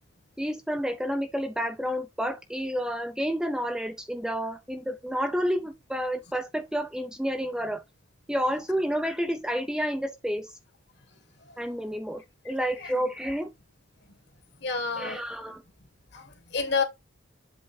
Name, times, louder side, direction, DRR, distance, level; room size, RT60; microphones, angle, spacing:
voice 1, 0.4-7.8 8.3-10.6 11.6-13.5 15.0-15.6, equal, 5° right, 0.5 m, -30 dB
voice 2, 14.6-15.2 16.1-16.8, left 4 dB, 55° left, 1.8 m, -29 dB
7.9 x 3.6 x 4.8 m
head